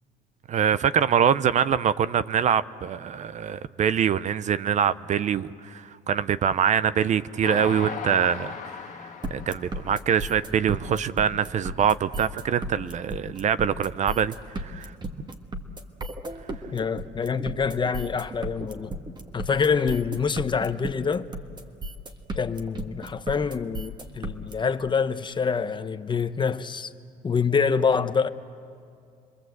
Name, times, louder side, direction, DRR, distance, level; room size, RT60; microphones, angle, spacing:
voice 1, 0.5-8.9 9.3-14.9, right 8 dB, 45° right, 0.6 m, -24 dB
Train, 7.4-10.9 11.4-11.5 11.8-11.9, left 6 dB, 45° left, 1.8 m, -38 dB
sound 1, 9.2-24.5, right 1 dB, 25° right, 1.6 m, -35 dB
voice 2, 16.7-18.9 19.3-21.3 22.4-26.9 27.2-28.3, left 5 dB, 30° left, 0.8 m, -26 dB
28.0 x 21.5 x 7.9 m
cardioid pair, 110°, 17 cm